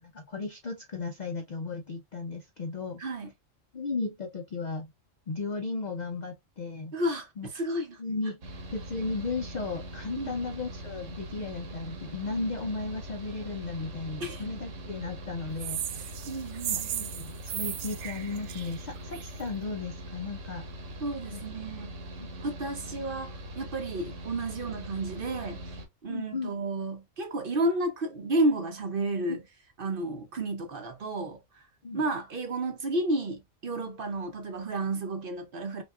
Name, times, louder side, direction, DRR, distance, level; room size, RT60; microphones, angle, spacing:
voice 1, 0.1-3.0 3.7-4.9 5.3-6.9 7.4-7.5 8.0-16.2 16.7-20.7 21.3-21.4 21.7-21.8 26.1-26.5 29.3-29.4 31.8-32.0, left 3 dB, 65° left, 0.4 m, -35 dB
voice 2, 3.0-3.3 6.9-8.0 10.2-10.4 14.2-14.4 16.3-17.1 21.0-21.9 22.4-29.4 29.8-31.7 31.9-35.8, right 2 dB, 50° right, 0.8 m, -32 dB
Mechanical fan, 8.4-25.9, right 1 dB, 70° right, 1.3 m, -42 dB
sound 1, 15.6-19.4, right 11 dB, 85° right, 1.0 m, -36 dB
5.2 x 2.3 x 2.3 m
omnidirectional pair, 1.4 m